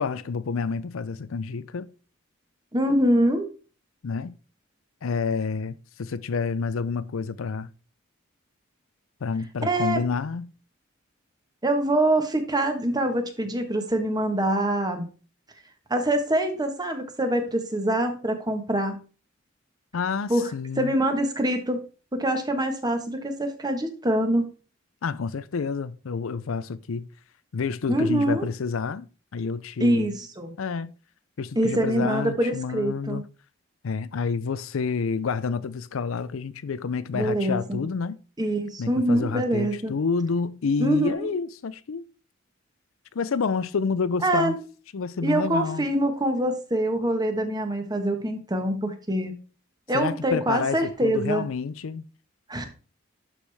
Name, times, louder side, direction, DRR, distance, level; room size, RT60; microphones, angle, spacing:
voice 1, 0.0-1.9 4.0-4.4 5.0-7.7 9.2-10.5 19.9-20.9 25.0-27.1 27.5-30.1 30.6-30.9 31.4-33.2 33.8-38.2 38.8-42.0 43.1-44.6 44.9-45.9 49.9-52.0, left 5 dB, 80° left, 0.5 m, -29 dB
voice 2, 2.7-3.5 9.6-10.0 11.6-15.1 15.9-19.0 20.3-20.5 20.8-21.8 22.1-24.5 27.9-28.5 29.8-30.5 31.5-33.2 37.1-37.9 38.4-39.9 40.8-41.3 44.2-44.6 45.2-49.3 49.9-51.4 52.5-52.7, right 1 dB, 20° right, 1.2 m, -24 dB
11.5 x 5.0 x 3.4 m
head